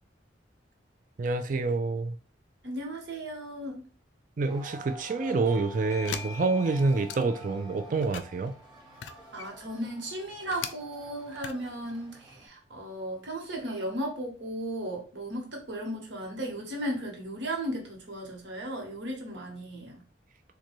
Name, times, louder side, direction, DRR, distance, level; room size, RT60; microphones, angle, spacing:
voice 1, 1.2-2.1 4.4-8.6, right 3 dB, 45° right, 0.4 m, -27 dB
voice 2, 2.6-3.9 9.3-20.0, right 1 dB, 85° right, 1.2 m, -35 dB
sound 1, 4.5-12.5, right 1 dB, 25° right, 0.9 m, -49 dB
Bell / Doorbell, 5.5-10.6, left 1 dB, 15° left, 0.5 m, -48 dB
sound 2, 6.0-7.5 7.9-10.7 11.2-11.9, left 8 dB, 90° left, 0.4 m, -40 dB
3.8 x 2.2 x 3.0 m
head